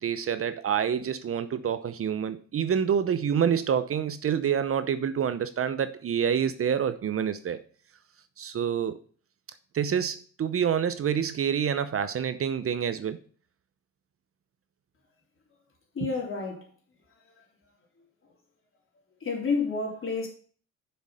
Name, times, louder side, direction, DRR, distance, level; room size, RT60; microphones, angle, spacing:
voice 1, 0.0-7.6 8.4-9.0 9.7-13.2, right 8 dB, 50° right, 0.8 m, -27 dB
voice 2, 15.9-16.7 17.1-17.5 18.0-18.3 19.2-20.3, left 4 dB, 45° left, 3.5 m, -31 dB
6.8 x 6.6 x 5.5 m
cardioid pair, 90°, 30 cm